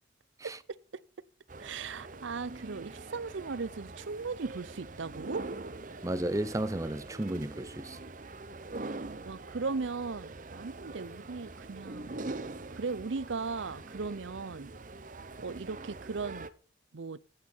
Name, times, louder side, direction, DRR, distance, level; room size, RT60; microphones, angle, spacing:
sound 1, 1.5-16.5, right 2 dB, 45° right, 0.8 m, -44 dB
voice 1, 1.6-5.5 9.2-12.1 12.7-14.7 15.4-16.5 16.9-17.2, right 4 dB, 80° right, 0.6 m, -37 dB
voice 2, 6.0-8.0, right 1 dB, 15° right, 0.6 m, -33 dB
12.5 x 8.2 x 5.6 m
head